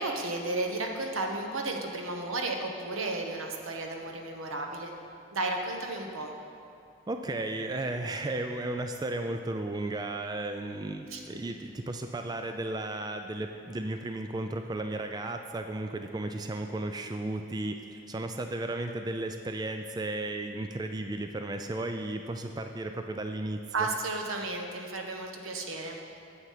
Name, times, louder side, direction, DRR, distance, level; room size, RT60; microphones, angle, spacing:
voice 1, 0.0-4.9 5.3-6.3 11.1-11.2 23.7-26.0, right 2 dB, 90° right, 2 dB, 1.1 m, -33 dB
voice 2, 7.1-23.9, right 2 dB, 20° right, 6 dB, 0.3 m, -34 dB
9.0 x 8.0 x 5.7 m, 2.5 s
head